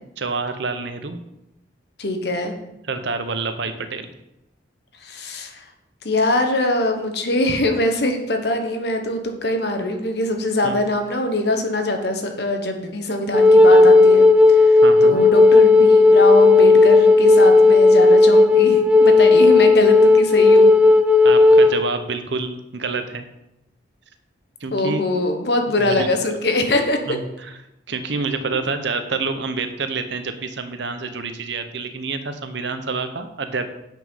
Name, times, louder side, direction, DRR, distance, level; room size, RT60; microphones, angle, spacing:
voice 1, 0.2-1.2 2.9-4.1 10.6-10.8 14.8-15.3 19.4-19.6 21.2-23.3 24.6-25.0 25.8-26.1 27.1-27.2 27.9-33.7, right 4 dB, 65° right, 9 dB, 0.8 m, -27 dB
voice 2, 2.0-2.5 5.0-5.6 6.0-20.7 24.7-27.0, left 1 dB, 55° left, 5 dB, 1.2 m, -23 dB
Wind instrument woodwind instrument, 13.3-21.8, left 3 dB, 5° right, 0.4 m, -12 dB
8.6 x 6.1 x 5.5 m, 0.87 s
head